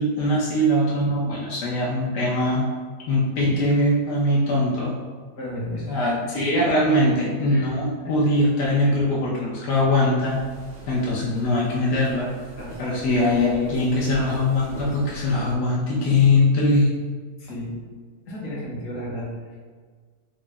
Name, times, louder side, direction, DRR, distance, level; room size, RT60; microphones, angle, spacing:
voice 1, 0.0-2.7 3.1-4.9 5.9-10.5 10.9-12.3 12.8-16.9, left 1 dB, 85° left, -6 dB, 1.3 m, -21 dB
voice 2, 5.3-6.2 6.8-6.9 7.5-7.7 8.0-8.2 12.5-12.8 17.4-17.8 18.3-19.6, left 1 dB, 65° left, -6 dB, 1.5 m, -34 dB
sound 1, 10.2-15.5, equal, 40° right, 0.6 m, -43 dB
4.8 x 2.0 x 3.3 m, 1.5 s
omnidirectional pair, 1.7 m